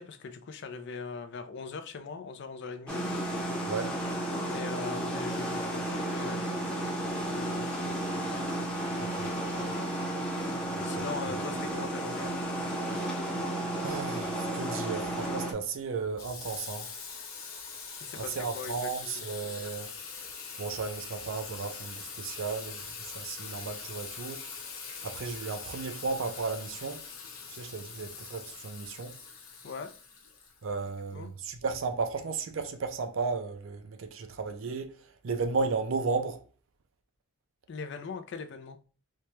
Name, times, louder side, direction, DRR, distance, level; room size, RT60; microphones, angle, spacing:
voice 1, 0.0-3.0 4.5-6.7 7.3-7.8 10.8-12.3 18.0-19.1 29.6-29.9 31.1-31.3 37.7-38.8, left 5 dB, 55° left, 0.4 m, -40 dB
sound 1, 2.9-15.5, right 1 dB, 5° left, 0.7 m, -33 dB
voice 2, 13.8-16.9 18.2-19.9 20.6-24.4 25.0-27.0 27.5-29.2 30.6-35.0 35.2-36.4, right 4 dB, 65° right, 0.4 m, -34 dB
Water tap faucet / Sink (filling or washing), 16.2-30.9, left 5 dB, 90° left, 0.9 m, -43 dB
4.5 x 2.2 x 2.8 m
head